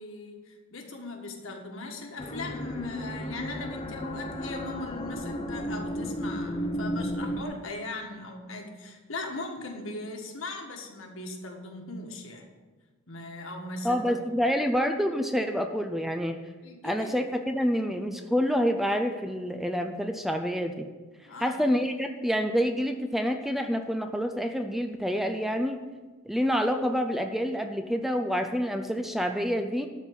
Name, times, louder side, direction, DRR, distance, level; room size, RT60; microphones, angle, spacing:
voice 1, 0.0-12.5 13.1-14.2 16.6-17.4 21.2-21.6, left 2 dB, 65° left, 2 dB, 1.6 m, -39 dB
sound 1, 2.2-7.4, equal, 25° left, 0.8 m, -33 dB
voice 2, 13.8-16.4 16.8-20.9 21.4-25.8 26.3-29.9, equal, ahead, 6 dB, 0.4 m, -27 dB
12.5 x 4.5 x 8.0 m, 1.3 s
head